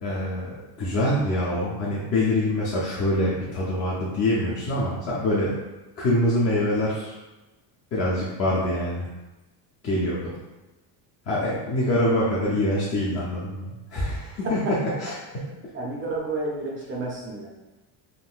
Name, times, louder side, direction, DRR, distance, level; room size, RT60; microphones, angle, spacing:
voice 1, 0.0-5.5 6.0-7.2 7.9-9.1 9.8-10.3 11.3-15.4, left 1 dB, 35° left, -7 dB, 0.4 m, -25 dB
voice 2, 12.0-12.4 15.7-17.5, right 3 dB, 30° right, -2 dB, 0.4 m, -31 dB
3.7 x 2.5 x 2.3 m, 1.1 s
cardioid pair, 160°, 48 cm